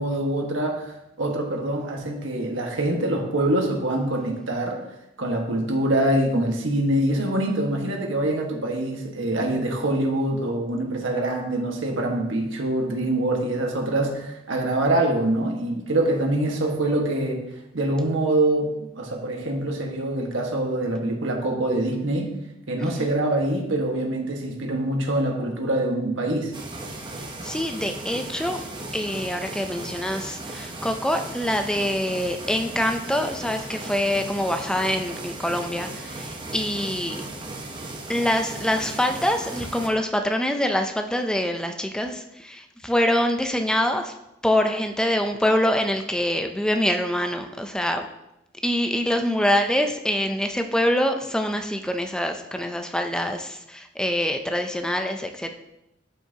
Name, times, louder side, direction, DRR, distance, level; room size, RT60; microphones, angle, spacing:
voice 1, 0.0-4.8 5.2-17.5 17.7-22.3 22.7-26.5, right 1 dB, 85° right, 1 dB, 1.6 m, -24 dB
sound 1, 26.5-39.9, right 2 dB, 25° right, 0.9 m, -36 dB
voice 2, 27.4-28.6 28.9-35.9 36.5-37.2 38.1-42.2 42.5-44.1 44.4-48.0 48.6-55.5, left 1 dB, 5° left, 5 dB, 0.5 m, -25 dB
12.0 x 5.7 x 2.9 m, 0.88 s
head